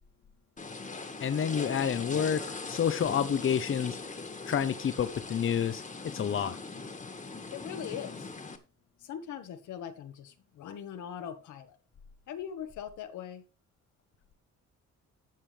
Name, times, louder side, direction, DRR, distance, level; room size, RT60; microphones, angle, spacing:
sound 1, 0.6-8.6, left 3 dB, 25° left, 1.8 m, -40 dB
voice 1, 1.2-4.0 4.5-5.8 6.1-6.6, left 8 dB, 45° left, 0.9 m, -29 dB
voice 2, 7.5-8.3 9.0-11.8 12.3-13.4, left 9 dB, 80° left, 1.6 m, -41 dB
13.0 x 7.5 x 3.4 m
cardioid pair, 90°, 30 cm